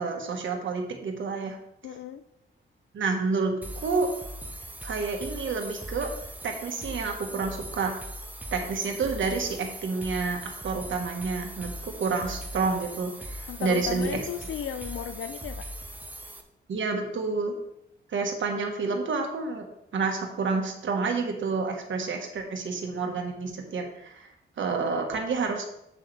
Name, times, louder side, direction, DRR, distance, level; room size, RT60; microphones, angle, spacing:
voice 1, 0.0-1.6 2.9-4.1 4.8-6.1 6.4-7.9 8.5-14.2 16.7-17.6 18.1-19.6 19.9-24.3 24.6-25.6, right 4 dB, 70° right, 3 dB, 1.4 m, -29 dB
voice 2, 1.8-2.2 13.5-15.6, left 9 dB, 80° left, 10 dB, 0.4 m, -34 dB
sound 1, 3.6-16.4, right 1 dB, 10° right, 0.7 m, -40 dB
7.7 x 7.5 x 3.3 m, 0.80 s
wide cardioid pair, 160°, 20 cm